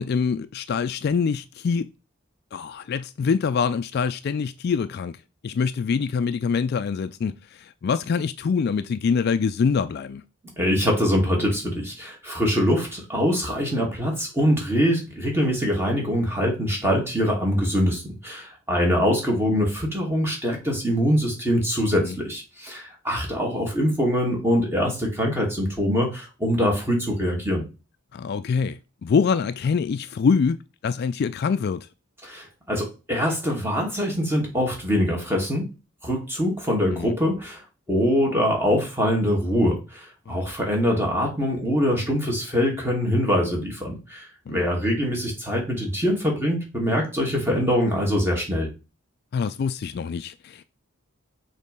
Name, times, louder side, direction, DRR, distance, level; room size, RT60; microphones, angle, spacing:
voice 1, 0.0-1.9 2.5-5.2 5.4-10.2 21.9-22.2 28.1-30.6 30.8-31.9 36.9-37.2 40.3-40.4 44.5-44.6 49.3-50.6, left 5 dB, 50° left, 0.3 m, -25 dB
voice 2, 10.6-27.6 32.2-35.7 36.0-37.6 37.9-48.7, equal, 10° right, 2.1 m, -23 dB
6.4 x 3.1 x 5.3 m
head